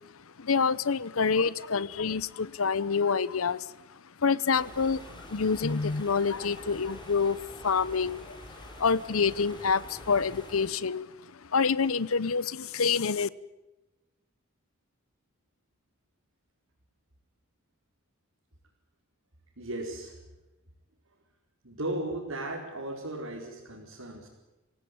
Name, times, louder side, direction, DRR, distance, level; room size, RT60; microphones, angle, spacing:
voice 1, 0.4-3.7 4.2-7.4 7.6-8.4 8.8-11.1 11.4-13.3, left 5 dB, 75° left, 19 dB, 0.8 m, -27 dB
sound 1, 4.5-10.7, left 1 dB, 20° left, 7.5 m, -47 dB
voice 2, 19.6-20.2 21.6-24.3, right 1 dB, 75° right, -2 dB, 5.0 m, -36 dB
27.0 x 17.5 x 9.6 m, 1.1 s
head